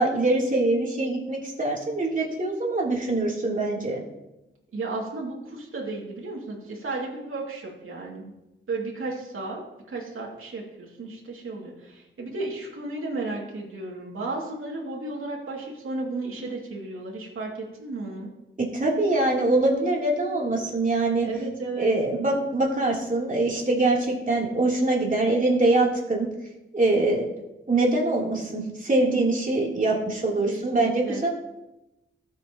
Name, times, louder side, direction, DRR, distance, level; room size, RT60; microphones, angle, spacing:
voice 1, 0.0-4.0 18.7-21.3 21.8-26.3 26.7-27.3 27.7-31.3, right 2 dB, 40° right, -2 dB, 3.2 m, -23 dB
voice 2, 4.7-8.3 8.7-9.6 9.9-17.5 17.8-18.3 21.2-21.9 30.5-31.2, right 3 dB, 90° right, -3 dB, 2.5 m, -33 dB
19.0 x 7.4 x 3.0 m, 0.94 s
wide cardioid pair, 70°, 21 cm